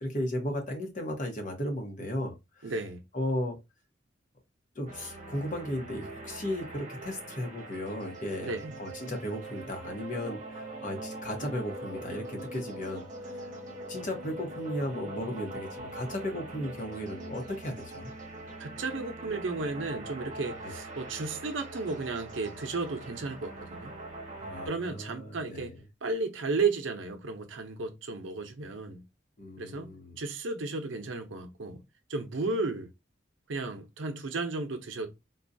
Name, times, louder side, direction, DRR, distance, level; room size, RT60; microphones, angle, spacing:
voice 1, 0.0-2.7 3.1-3.6 4.7-13.5 13.9-18.1 20.6-20.7 24.4-25.8 29.4-30.2, left 1 dB, 40° left, 0.9 m, -35 dB
voice 2, 2.6-3.0 8.4-8.7 18.6-23.9 24.7-25.7 26.0-29.0 29.6-31.8 32.1-32.9 33.5-35.1, right 3 dB, 85° right, 0.6 m, -33 dB
sound 1, 4.9-24.7, right 2 dB, 40° right, 0.9 m, -42 dB
3.9 x 2.2 x 2.6 m
head